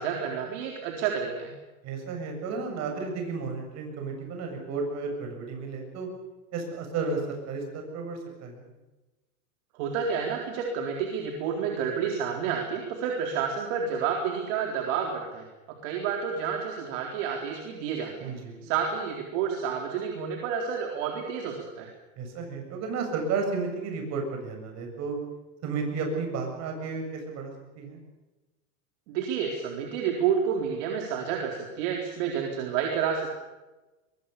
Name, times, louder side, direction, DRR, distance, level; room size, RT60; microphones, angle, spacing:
voice 1, 0.0-1.5 9.7-15.4 15.8-18.3 18.6-21.9 29.1-33.3, right 7 dB, 50° right, 1 dB, 4.0 m, -30 dB
voice 2, 1.8-6.1 6.5-8.7 18.2-18.7 22.2-25.2 25.6-28.0, right 4 dB, 35° right, 3 dB, 7.4 m, -33 dB
23.0 x 22.5 x 6.9 m, 1.1 s
supercardioid pair, 145°, 47 cm